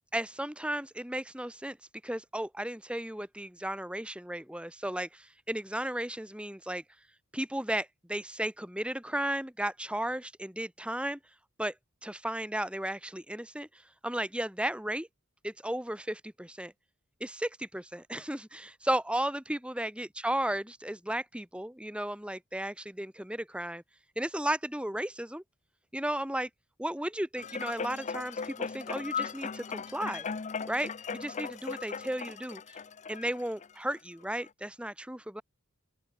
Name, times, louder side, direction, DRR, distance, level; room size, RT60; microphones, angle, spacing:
voice 1, 0.1-1.8 2.0-6.8 7.3-11.2 11.6-11.7 12.0-13.7 14.0-15.1 15.4-16.7 17.2-23.8 24.2-25.4 25.9-26.5 26.8-30.2 30.7-32.6 33.1-35.4, right 1 dB, 5° right, 2.3 m, -34 dB
sound 1, 27.4-33.9 34.5-34.6, left 5 dB, 35° left, 0.6 m, -38 dB
open air
head